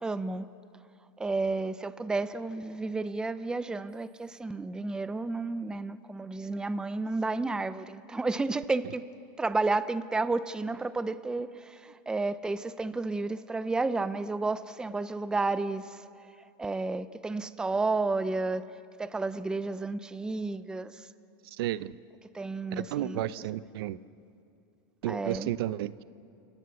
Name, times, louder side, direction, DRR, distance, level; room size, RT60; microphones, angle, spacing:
voice 1, 0.0-0.5 1.2-9.0 9.4-15.8 16.6-18.6 19.0-20.9 22.3-23.3 25.1-25.5, right 3 dB, 5° right, 14 dB, 0.5 m, -31 dB
voice 2, 21.5-21.9 22.7-24.0 25.0-26.0, right 13 dB, 70° right, 17 dB, 0.7 m, -32 dB
29.5 x 18.0 x 7.1 m, 2.6 s
supercardioid pair, 140°, 13 cm